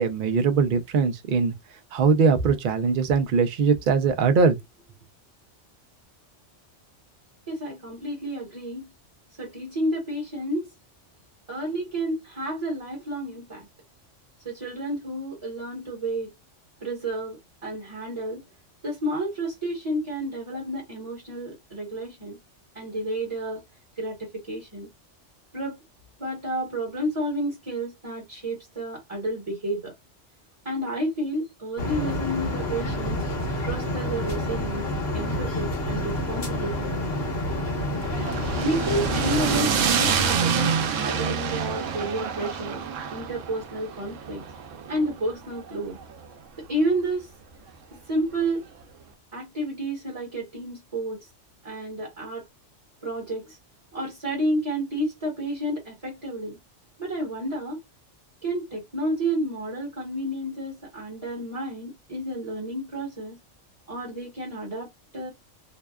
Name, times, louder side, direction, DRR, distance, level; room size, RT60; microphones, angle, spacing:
voice 1, 0.0-1.5 1.9-4.6, right 5 dB, 60° right, 0.6 m, -21 dB
voice 2, 7.5-8.9 9.4-10.7 11.5-13.7 14.4-16.3 16.8-18.4 18.8-22.4 22.7-23.6 24.0-24.9 25.5-25.8 26.2-29.9 30.6-33.2 33.6-34.9 35.1-36.9 38.6-42.8 43.1-44.4 44.9-46.0 46.7-47.3 48.1-48.6 49.3-51.3 51.6-52.5 53.0-53.6 53.9-56.6 57.0-57.8 58.4-63.4 63.9-64.9 65.1-65.3, right 1 dB, 25° right, 1.1 m, -30 dB
sound 1, 31.8-39.6, left 1 dB, 55° left, 1.1 m, -28 dB
sound 2, 38.0-46.3, right 7 dB, 85° right, 1.0 m, -27 dB
2.7 x 2.2 x 2.2 m
omnidirectional pair, 1.3 m